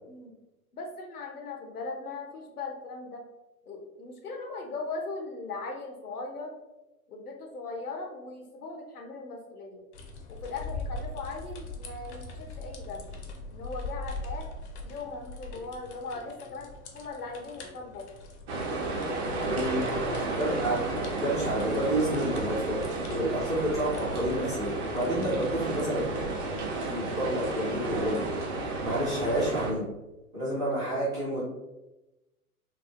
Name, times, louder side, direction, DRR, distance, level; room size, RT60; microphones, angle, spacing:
voice 1, 0.7-3.2 3.7-6.5 7.1-9.8 10.3-13.1 13.5-14.5 14.8-18.1 19.0-20.1 30.7-31.0, left 3 dB, 80° left, 2 dB, 0.7 m, -39 dB
sound 1, 9.9-25.9, left 2 dB, 50° left, 0.6 m, -43 dB
sound 2, 18.5-29.7, right 2 dB, 50° right, 0.7 m, -32 dB
voice 2, 19.4-22.8 23.1-26.0 26.8-28.3 28.8-29.9 30.3-31.4, right 1 dB, 10° right, -11 dB, 0.3 m, -30 dB
3.1 x 2.1 x 2.5 m, 1.0 s
figure-of-eight pair, 100°, 45 cm